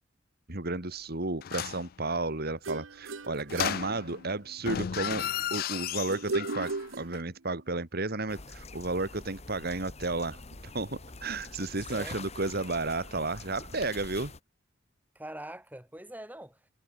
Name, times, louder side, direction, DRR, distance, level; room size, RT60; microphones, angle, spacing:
voice 1, 0.5-14.3, right 2 dB, 50° right, 2.2 m, -33 dB
sound 1, 1.4-1.9 3.5-4.3 4.6-6.9 7.1-7.2, left 10 dB, 50° left, 0.4 m, -34 dB
sound 2, 2.6-4.6 6.1-7.6, right 3 dB, 90° right, 1.3 m, -37 dB
sound 3, 8.3-14.4, left 3 dB, 35° left, 1.5 m, -46 dB
voice 2, 15.1-16.7, right 1 dB, 10° right, 6.5 m, -43 dB
head